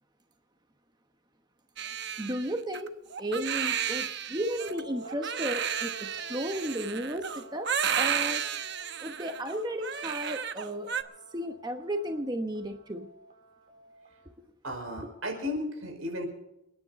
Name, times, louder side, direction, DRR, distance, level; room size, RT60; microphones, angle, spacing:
Crying sobbing, 1.8-11.0, right 8 dB, 55° right, 0.9 m, -32 dB
voice 1, 2.2-8.4 9.0-10.9 11.3-13.1 14.4-14.5, equal, 20° right, 5 dB, 1.0 m, -34 dB
sound 1, 4.6-14.3, right 2 dB, 40° right, 3.1 m, -49 dB
voice 2, 14.6-16.3, left 1 dB, 85° right, 3 dB, 5.2 m, -34 dB
28.5 x 10.0 x 4.1 m, 0.89 s
head